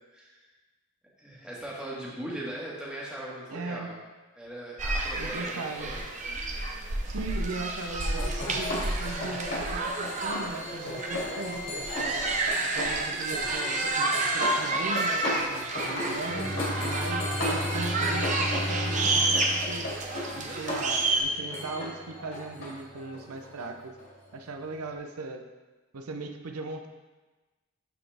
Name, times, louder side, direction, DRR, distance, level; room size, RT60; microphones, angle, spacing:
voice 1, 0.1-0.4 1.2-4.0 4.4-6.0, right 1 dB, 5° right, -6 dB, 1.5 m, -39 dB
voice 2, 3.5-3.9 5.1-5.9 7.1-12.3 12.7-20.0 20.4-23.9 24.3-25.4 25.9-26.9, right 3 dB, 85° right, 5 dB, 0.7 m, -38 dB
sound 1, 4.8-21.2, right 2 dB, 35° right, 0.6 m, -30 dB
Hare Krishnas up close, 8.0-24.3, left 1 dB, 55° left, 2.6 m, -35 dB
Bowed string instrument, 16.2-21.9, left 1 dB, 20° left, 0.8 m, -35 dB
11.5 x 4.2 x 3.4 m, 1.2 s
head